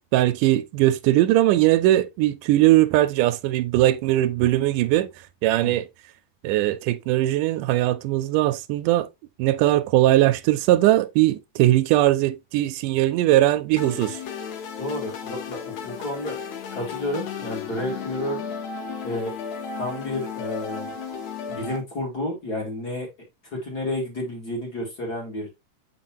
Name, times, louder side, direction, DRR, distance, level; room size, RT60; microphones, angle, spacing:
voice 1, 0.1-5.1 5.4-5.9 6.4-9.1 9.4-14.2, right 15 dB, 85° right, 2.1 m, -20 dB
sound 1, 13.8-21.8, left 6 dB, 65° left, 2.5 m, -34 dB
voice 2, 14.8-16.4 16.7-18.4 19.0-19.3 19.8-20.9 21.5-23.1 23.5-25.5, left 1 dB, 30° left, 2.5 m, -30 dB
7.2 x 5.2 x 2.9 m
omnidirectional pair, 3.7 m